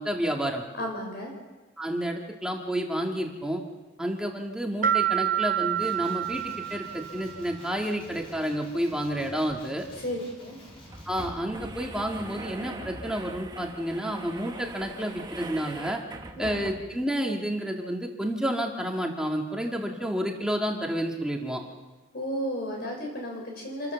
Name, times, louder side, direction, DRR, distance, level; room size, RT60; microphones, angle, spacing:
voice 1, 0.0-0.6 1.8-3.6 4.0-9.9 11.1-16.0 16.4-21.6, equal, 5° right, 0 dB, 2.1 m, -30 dB
voice 2, 0.7-1.3 9.9-10.6 16.3-16.6 22.1-23.9, equal, 55° left, 0 dB, 4.2 m, -33 dB
sound 1, 4.8-7.5, right 10 dB, 45° right, 0.9 m, -28 dB
Male speech man speaking, 5.7-11.4, equal, 30° left, 7.3 m, -49 dB
sound 2, 10.7-17.1, right 2 dB, 20° right, 1.3 m, -41 dB
28.0 x 14.0 x 7.1 m, 1.2 s
head